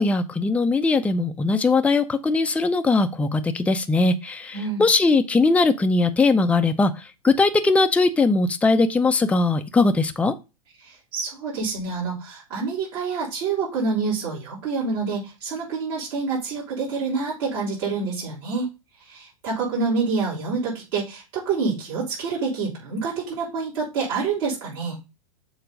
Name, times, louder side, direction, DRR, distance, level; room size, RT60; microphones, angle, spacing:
voice 1, 0.0-10.3, left 3 dB, 5° left, 7 dB, 0.6 m, -20 dB
voice 2, 4.5-4.8 10.8-18.7 19.0-25.0, right 4 dB, 55° right, -7 dB, 4.1 m, -27 dB
6.8 x 4.0 x 5.1 m, 0.27 s
figure-of-eight pair, 100°, 19 cm